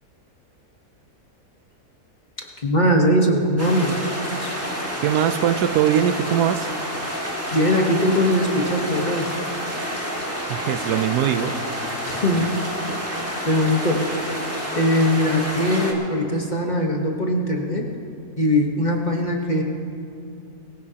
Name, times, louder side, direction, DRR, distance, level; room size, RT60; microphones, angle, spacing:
voice 1, 2.6-4.0 4.4-4.5 7.5-9.3 12.0-12.6 13.4-14.5 14.7-17.9 18.4-19.6, equal, 30° left, 0 dB, 1.2 m, -21 dB
sound 1, 3.6-15.9, equal, 10° right, 1.6 m, -29 dB
voice 2, 5.0-6.7 10.5-11.6, right 10 dB, 80° right, 11 dB, 1.1 m, -21 dB
22.5 x 15.5 x 2.9 m, 2.5 s
omnidirectional pair, 1.7 m